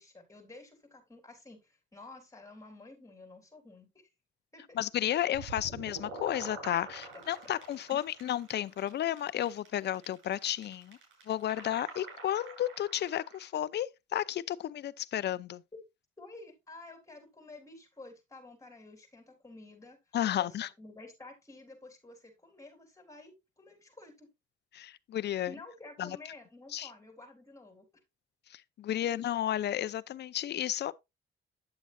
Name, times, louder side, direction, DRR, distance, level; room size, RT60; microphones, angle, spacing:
voice 1, 0.0-4.0 4.5-4.8 7.1-7.2 7.9-8.0 16.2-24.3 25.5-27.9, left 2 dB, 15° left, 3.5 m, -51 dB
voice 2, 4.7-11.0 11.3-15.6 20.1-20.7 24.7-25.5 26.0-26.2 26.7-26.9 28.5-30.9, left 11 dB, 60° left, 0.6 m, -32 dB
sound 1, 5.3-13.5, right 4 dB, 85° right, 6.1 m, -47 dB
9.7 x 7.2 x 2.6 m
cardioid pair, 90°, 20 cm